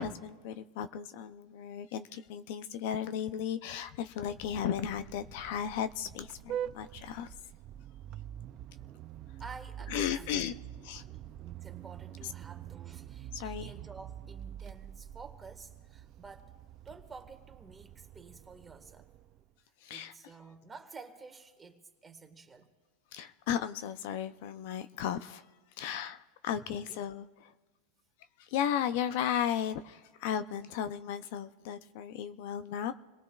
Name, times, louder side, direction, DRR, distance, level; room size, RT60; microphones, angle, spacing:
voice 1, 0.0-7.3 9.9-10.5 10.8-11.0 13.3-13.7 19.8-20.1 23.1-25.4 25.8-27.5 28.4-32.9, left 9 dB, 60° left, 12 dB, 0.5 m, -35 dB
Vehicle horn car horn honking, 4.1-19.5, right 10 dB, 40° right, 0.4 m, -45 dB
voice 2, 9.4-10.5 11.1-16.5 16.8-19.1 19.9-22.7 26.5-27.0, right 4 dB, 15° right, 4 dB, 1.7 m, -51 dB
27.5 x 19.0 x 2.4 m, 1.3 s
hypercardioid pair, 125°, 0 cm